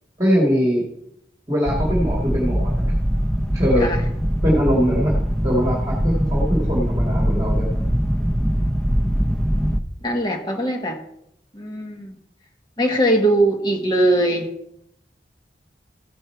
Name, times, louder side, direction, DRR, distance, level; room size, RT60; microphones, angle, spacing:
voice 1, 0.2-0.8 1.5-2.9 3.5-3.9 4.4-5.2 5.4-7.8, equal, 20° right, -3 dB, 1.9 m, -21 dB
sound 1, 1.7-9.8, equal, ahead, 0.7 m, -22 dB
voice 2, 10.0-11.0 11.5-12.1 12.8-14.5, right 1 dB, 25° left, 2 dB, 1.4 m, -20 dB
15.0 x 5.5 x 4.5 m, 0.76 s
head